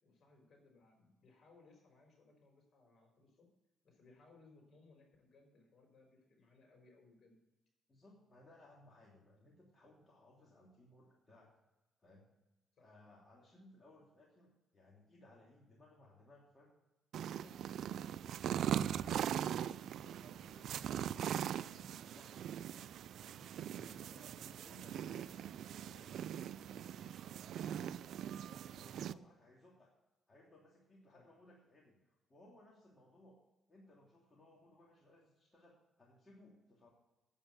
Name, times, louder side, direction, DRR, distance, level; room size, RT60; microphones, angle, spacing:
voice 1, 0.0-3.5 3.8-7.4 12.7-12.9 23.6-24.2 28.2-28.5 31.1-31.3, left 3 dB, 55° left, 2 dB, 5.3 m, -65 dB
voice 2, 7.9-11.5 12.0-12.2 12.8-16.7 17.2-18.2 18.7-21.3 21.6-22.4 23.2-23.5 23.8-25.5 25.8-28.0 28.5-29.9 30.3-33.4 33.7-36.9, left 1 dB, 25° left, -4 dB, 2.9 m, -63 dB
sound 1, 17.1-29.1, right 10 dB, 70° right, 0.4 m, -41 dB
8.8 x 8.6 x 7.8 m, 1.0 s
cardioid pair, 90°, 0 cm